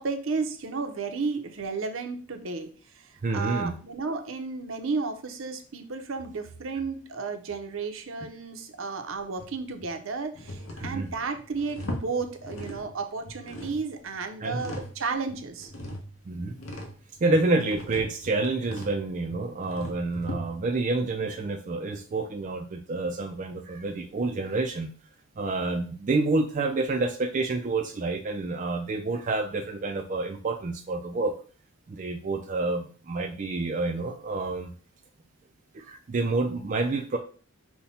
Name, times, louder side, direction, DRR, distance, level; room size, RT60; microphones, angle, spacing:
voice 1, 0.0-2.7 3.3-15.7, right 4 dB, 65° right, 6 dB, 0.7 m, -33 dB
voice 2, 3.2-3.8 10.8-11.1 14.4-14.6 16.3-16.6 17.2-24.9 25.4-31.3 31.9-34.7 35.7-37.2, right 3 dB, 35° right, 2 dB, 0.4 m, -28 dB
sound 1, 9.4-9.9 10.4-13.0 13.3-15.0 15.3-20.8, left 1 dB, 70° left, 1.0 m, -39 dB
5.7 x 2.2 x 4.1 m, 0.40 s
head